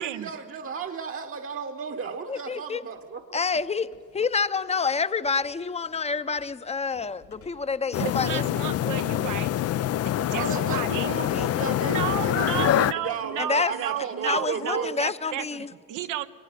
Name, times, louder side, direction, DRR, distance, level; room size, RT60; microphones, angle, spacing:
voice 1, 0.0-3.2 10.3-15.0, right 5 dB, 45° right, 5 dB, 1.2 m, -34 dB
voice 2, 2.3-2.8 3.3-8.4 11.3-11.4 13.4-13.7 14.2-15.7, left 5 dB, 20° left, 14 dB, 0.7 m, -28 dB
sound 1, 3.0-8.4, left 5 dB, 80° left, 5.8 m, -59 dB
sound 2, 7.9-12.9, left 12 dB, 55° left, 0.4 m, -25 dB
voice 3, 8.0-9.5 9.9-11.1 11.8-16.3, right 11 dB, 90° right, 10 dB, 1.0 m, -33 dB
23.5 x 19.5 x 6.8 m, 2.1 s
cardioid pair, 90°, 30 cm